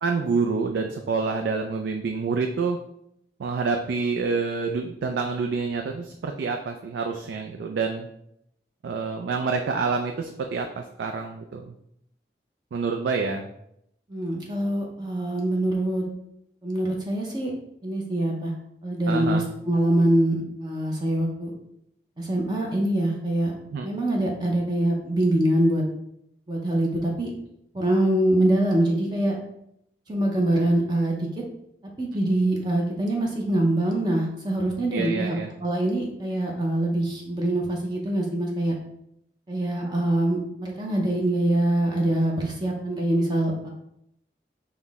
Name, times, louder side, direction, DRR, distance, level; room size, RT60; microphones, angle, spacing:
voice 1, 0.0-2.8 3.4-8.1 8.8-11.7 12.7-13.5 19.1-19.5 23.7-23.9 34.9-35.5, right 4 dB, 90° right, 4 dB, 0.3 m, -27 dB
voice 2, 14.1-16.0 16.6-17.5 17.8-18.5 18.8-21.5 22.2-23.5 23.8-25.8 26.5-27.3 27.7-29.4 30.1-31.4 32.0-38.8 39.5-43.7, right 1 dB, 25° right, -1 dB, 0.6 m, -24 dB
5.7 x 2.1 x 3.4 m, 0.77 s
head